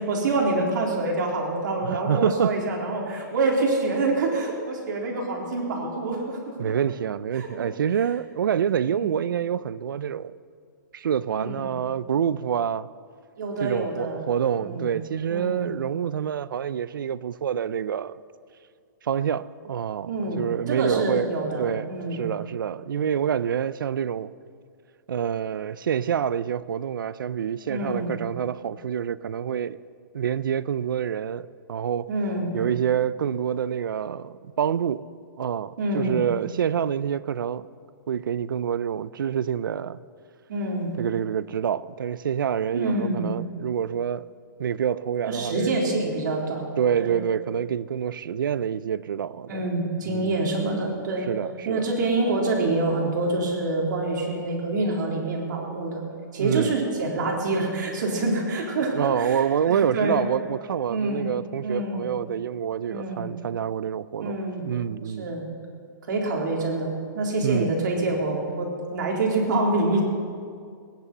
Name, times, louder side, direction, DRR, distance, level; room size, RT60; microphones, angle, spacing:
voice 1, 0.0-6.6 7.3-7.7 8.9-9.1 11.3-11.7 13.4-14.2 14.6-14.9 15.3-15.7 20.0-22.2 27.7-28.1 32.1-32.5 35.8-36.2 40.5-40.9 42.7-43.3 45.3-46.7 47.0-47.2 49.5-51.3 51.7-56.0 56.3-60.2 60.9-61.3 61.6-62.0 62.9-63.3 64.2-64.6 65.2-65.5 66.1-70.0, right 2 dB, 65° right, 3.8 m, -26 dB
voice 2, 1.8-2.5 6.6-10.3 10.9-12.9 13.6-18.2 19.0-21.3 21.6-24.3 25.1-29.8 30.1-32.1 32.5-35.0 35.4-37.7 38.1-40.0 41.0-44.3 44.6-45.7 46.8-49.6 50.1-50.4 51.3-51.9 56.4-56.8 58.9-65.3 67.4-67.7, right 8 dB, 90° right, 0.5 m, -27 dB
18.5 x 10.5 x 6.1 m
hypercardioid pair, 160°, 11 cm